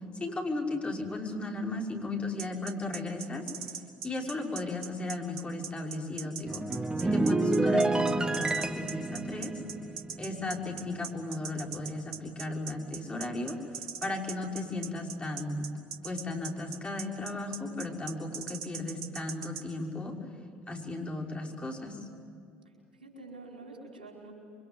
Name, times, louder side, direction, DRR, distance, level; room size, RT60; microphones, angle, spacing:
voice 1, 0.1-3.4 4.0-6.6 7.0-9.5 10.2-13.6 14.0-15.7 16.0-20.1 20.7-22.0, left 2 dB, 25° left, 0 dB, 5.9 m, -35 dB
sound 1, 2.4-19.6, right 7 dB, 70° right, 2.5 m, -40 dB
sound 2, 6.5-11.1 11.4-11.7, right 2 dB, 15° right, 1.5 m, -29 dB
voice 2, 22.6-24.3, right 2 dB, 90° right, -1 dB, 4.9 m, -48 dB
28.5 x 24.5 x 8.2 m, 2.5 s
hypercardioid pair, 60°, 5 cm